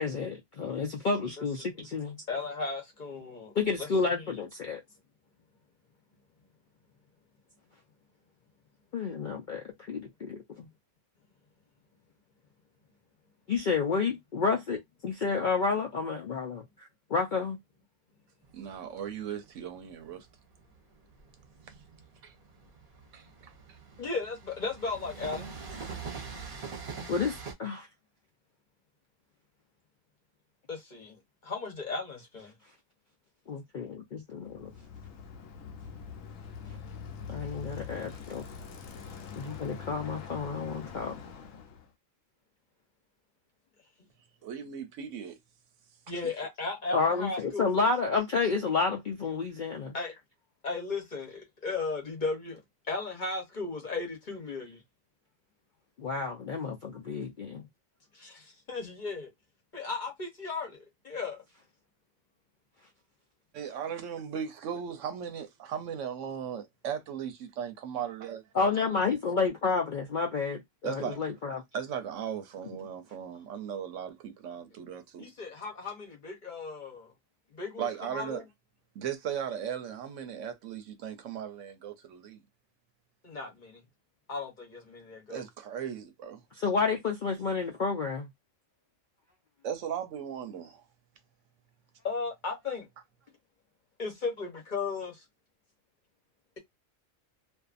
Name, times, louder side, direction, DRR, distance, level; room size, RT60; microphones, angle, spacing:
voice 1, 0.0-2.2 3.6-4.8 8.9-10.7 13.5-17.6 27.1-27.9 33.5-34.7 37.3-38.4 39.4-41.1 46.9-49.9 56.0-57.6 68.5-71.6 86.6-88.3, left 4 dB, 60° left, 0.5 m, -30 dB
voice 2, 2.3-3.5 3.8-4.2 24.0-25.5 30.7-32.5 46.1-47.8 49.9-50.2 50.6-52.6 52.9-54.8 58.1-59.3 59.7-60.8 61.0-61.4 75.2-77.1 77.5-78.4 83.2-83.8 84.3-85.4 92.0-92.9 94.0-95.2, left 4 dB, 45° left, 0.9 m, -36 dB
Train, 18.4-27.5, right 5 dB, 50° right, 0.9 m, -44 dB
voice 3, 18.5-20.3 22.2-22.3 23.1-23.5 44.4-45.4 63.5-68.9 70.8-71.2 71.7-75.3 77.8-78.4 78.9-82.4 85.3-86.4 89.6-90.8, right 8 dB, 75° right, 1.0 m, -37 dB
Bicycle, 34.4-41.9, left 6 dB, 80° left, 1.0 m, -44 dB
2.6 x 2.3 x 2.4 m
omnidirectional pair, 1.3 m